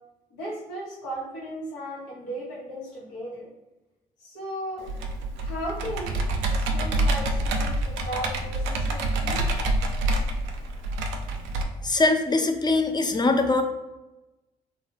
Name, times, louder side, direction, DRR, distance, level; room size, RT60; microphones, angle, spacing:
voice 1, 0.3-3.4 4.2-5.1 5.4-6.1 6.5-9.5, equal, 85° left, -5 dB, 1.2 m, -36 dB
Computer keyboard, 4.9-11.6, right 1 dB, 75° right, 0.5 m, -27 dB
voice 2, 11.8-13.6, left 3 dB, 20° left, 7 dB, 0.5 m, -22 dB
2.9 x 2.5 x 3.0 m, 1.0 s
hypercardioid pair, 45°, 19 cm